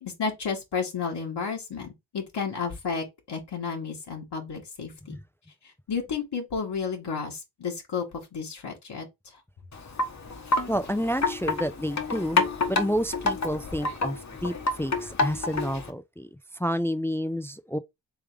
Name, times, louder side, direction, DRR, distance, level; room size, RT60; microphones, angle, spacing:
voice 1, 0.0-5.2 5.9-9.1, left 5 dB, 55° left, 1.4 m, -32 dB
Wind chime, 9.7-15.9, left 3 dB, 35° left, 1.0 m, -29 dB
voice 2, 10.7-16.3 16.5-17.8, equal, 5° left, 0.4 m, -30 dB
3.6 x 3.3 x 3.2 m
supercardioid pair, 45°, 47 cm